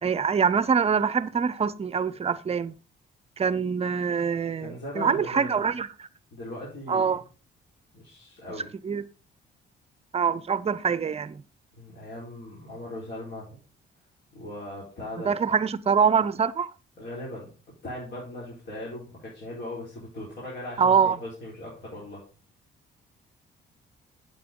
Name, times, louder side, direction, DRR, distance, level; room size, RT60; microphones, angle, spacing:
voice 1, 0.0-2.7 3.4-6.1 6.9-7.2 8.8-9.0 10.1-11.4 15.2-16.7 20.8-21.2, right 6 dB, 30° right, 0.6 m, -24 dB
voice 2, 4.6-5.7 6.3-7.2 7.9-8.7 11.8-13.6 14.3-15.3 17.0-17.5 17.8-22.2, left 1 dB, 60° left, 4.4 m, -39 dB
8.5 x 7.8 x 3.8 m
cardioid pair, 90°, 20 cm